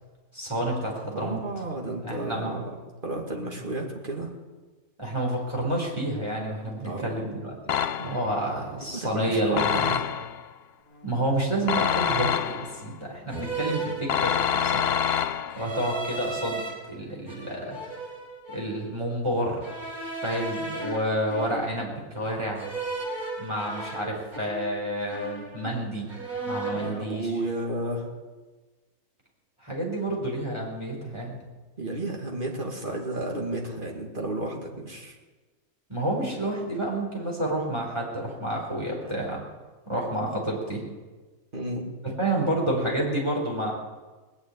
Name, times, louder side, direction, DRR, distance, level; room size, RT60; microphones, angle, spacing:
voice 1, 0.3-1.4 2.0-2.6 5.0-9.9 11.0-14.8 15.5-16.6 16.9-18.0 18.5-19.6 20.2-22.6 23.4-26.1 26.5-27.3 29.6-31.4 35.9-39.4 39.9-40.8 42.0-43.7, right 1 dB, 20° right, -3 dB, 4.3 m, -29 dB
voice 2, 1.1-2.7 3.0-4.3 6.9-7.2 8.8-10.0 26.7-28.1 31.8-35.1 39.0-39.1 41.5-41.9, right 1 dB, 35° right, 0 dB, 2.5 m, -32 dB
sound 1, 7.7-8.4 9.6-10.5 11.7-12.9 14.1-15.8, left 8 dB, 60° left, 0.7 m, -26 dB
sound 2, 10.9-11.1 12.0-12.5 13.3-14.7 15.5-16.7 17.3-18.8 19.6-22.0 22.6-24.8 25.1-25.8 26.1-27.0, right 2 dB, 80° right, 4.5 m, -36 dB
20.0 x 7.1 x 9.7 m, 1.3 s
omnidirectional pair, 1.5 m